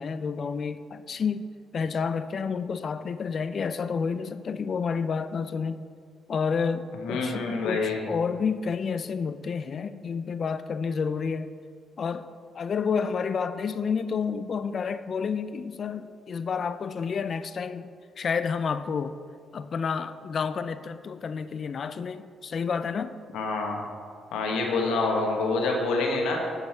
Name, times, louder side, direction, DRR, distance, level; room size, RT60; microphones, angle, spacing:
voice 1, 0.0-5.8 6.3-11.5 12.0-12.3 12.5-17.9 18.2-19.2 19.5-23.1, left 5 dB, 50° left, 12 dB, 0.4 m, -30 dB
voice 2, 7.0-8.1 23.3-23.8 24.3-26.4, left 3 dB, 90° left, 0 dB, 1.3 m, -27 dB
8.0 x 5.4 x 4.4 m, 2.1 s
cardioid pair, 90°, 0 cm